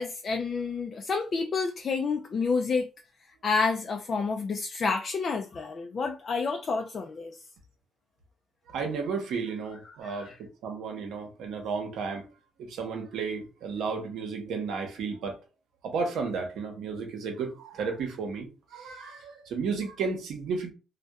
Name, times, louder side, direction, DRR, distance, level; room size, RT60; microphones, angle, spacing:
voice 1, 0.0-2.9 3.4-7.4 9.9-10.4, left 4 dB, 45° left, 0.3 m, -29 dB
voice 2, 8.7-10.3 10.6-12.2 12.6-15.3 15.8-18.5 18.7-20.7, right 5 dB, 80° right, 0.8 m, -33 dB
2.7 x 2.1 x 2.2 m
cardioid pair, 90°, 0 cm